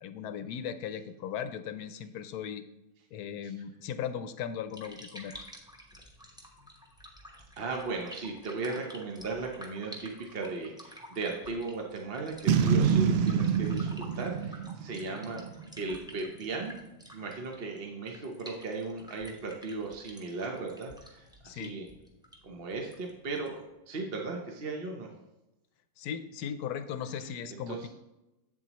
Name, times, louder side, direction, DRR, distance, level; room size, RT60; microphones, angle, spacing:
voice 1, 0.0-2.6 3.1-5.4 21.4-21.8 26.0-27.9, left 8 dB, 85° left, 11 dB, 1.2 m, -37 dB
sound 1, 4.6-23.7, equal, 5° right, 0.8 m, -51 dB
voice 2, 7.3-15.4 15.8-16.8 17.1-21.9 22.4-25.1 27.2-27.9, right 3 dB, 45° right, 1 dB, 1.0 m, -37 dB
Boom, 12.5-15.8, right 7 dB, 70° right, 0.6 m, -26 dB
8.1 x 7.4 x 3.0 m, 0.97 s
omnidirectional pair, 1.6 m